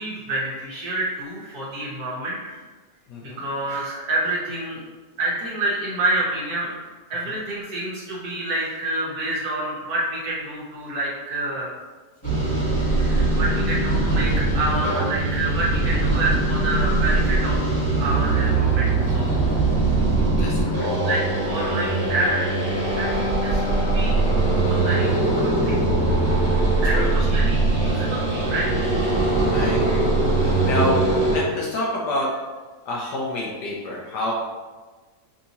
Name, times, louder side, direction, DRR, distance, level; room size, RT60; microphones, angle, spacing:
voice 1, 0.0-2.4 3.2-4.8 5.2-6.7 7.1-11.7 12.9-17.6 18.0-19.4 21.0-24.2 24.7-25.8 26.8-28.9, right 2 dB, 60° right, -6 dB, 1.3 m, -28 dB
voice 2, 3.1-3.4 7.3-7.4 19.8-20.9 26.8-27.4 29.5-32.6 32.8-34.3, left 1 dB, 75° left, -3 dB, 1.2 m, -28 dB
sound 1, 12.2-31.4, right 2 dB, 10° left, 1.1 m, -21 dB
5.4 x 2.7 x 2.7 m, 1.3 s
omnidirectional pair, 1.9 m